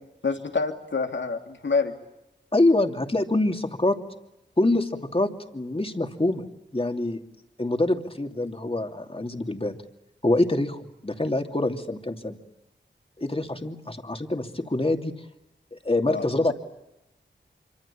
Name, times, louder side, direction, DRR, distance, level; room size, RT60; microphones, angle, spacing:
voice 1, 0.2-1.9 16.1-16.5, left 4 dB, 80° left, 5 dB, 2.8 m, -27 dB
voice 2, 2.5-4.0 4.6-6.4 6.7-7.2 7.6-9.8 10.2-12.4 13.2-15.1 15.7-16.5, left 2 dB, 30° left, 6 dB, 2.8 m, -25 dB
26.5 x 25.0 x 8.6 m, 0.91 s
cardioid pair, 45°, 19 cm